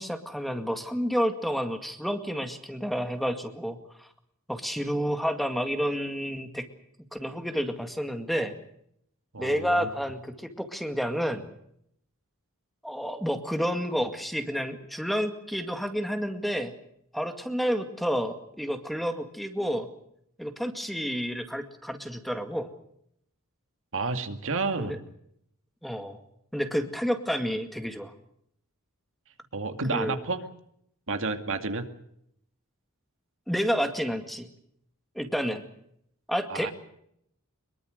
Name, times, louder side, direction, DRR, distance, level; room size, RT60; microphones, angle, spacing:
voice 1, 0.0-4.1 4.5-6.7 7.1-8.5 9.4-11.5 12.8-16.7 17.1-19.9 20.4-22.7 24.8-25.0 25.8-26.2 26.5-28.1 29.9-30.2 33.5-34.5 35.2-35.6 36.3-36.7, equal, ahead, 6 dB, 2.1 m, -30 dB
voice 2, 9.3-9.9 23.9-25.0 29.5-30.4 31.1-31.8 36.5-36.7, right 3 dB, 65° right, 7 dB, 2.3 m, -30 dB
24.0 x 22.5 x 6.6 m, 0.72 s
head